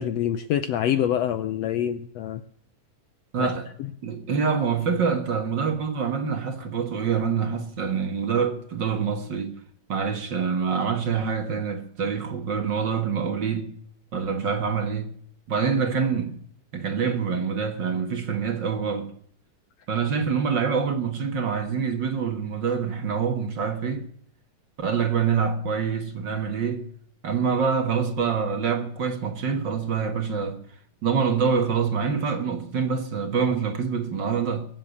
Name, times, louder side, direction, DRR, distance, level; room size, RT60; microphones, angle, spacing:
voice 1, 0.0-2.4 3.4-3.5, left 10 dB, 80° left, 1.4 m, -25 dB
voice 2, 3.3-3.7 4.0-9.6 9.9-13.7 14.1-15.1 15.5-16.4 16.7-19.1 19.9-24.1 24.8-26.8 27.2-30.6 31.0-34.7, right 6 dB, 45° right, 1.6 m, -26 dB
23.0 x 7.7 x 6.8 m
omnidirectional pair, 3.8 m